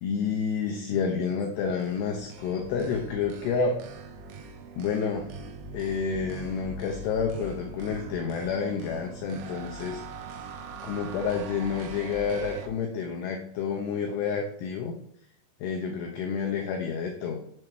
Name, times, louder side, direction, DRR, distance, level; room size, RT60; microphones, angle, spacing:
voice 1, 0.0-3.8 4.8-5.3 5.7-10.0 10.8-14.9 15.6-17.4, left 6 dB, 80° left, 2 dB, 2.5 m, -29 dB
sound 1, 1.6-12.7, right 4 dB, 90° right, 3.1 m, -41 dB
7.7 x 3.2 x 6.0 m, 0.68 s
omnidirectional pair, 5.4 m